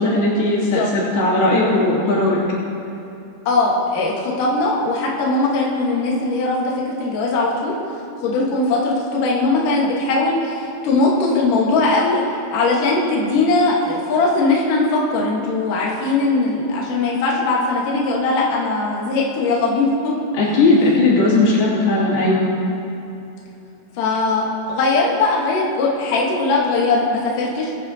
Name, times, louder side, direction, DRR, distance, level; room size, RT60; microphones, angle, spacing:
voice 1, 0.0-2.4 20.3-22.5, left 2 dB, 80° left, -6 dB, 4.4 m, -17 dB
voice 2, 0.6-0.9 3.5-7.8 8.2-12.2 12.5-20.1 20.4-20.6 24.0-27.7, left 3 dB, 65° left, -4 dB, 2.7 m, -20 dB
21.5 x 10.0 x 2.8 m, 2.8 s
omnidirectional pair, 4.4 m